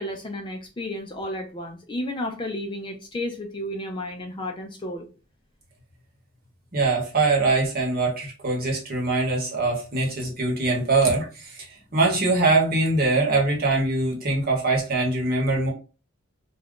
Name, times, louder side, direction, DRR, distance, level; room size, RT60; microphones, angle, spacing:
voice 1, 0.0-5.1, left 1 dB, 25° left, 3 dB, 0.3 m, -32 dB
voice 2, 6.7-11.7 11.9-15.7, right 3 dB, 45° right, -1 dB, 1.0 m, -23 dB
2.4 x 2.2 x 3.5 m, 0.34 s
head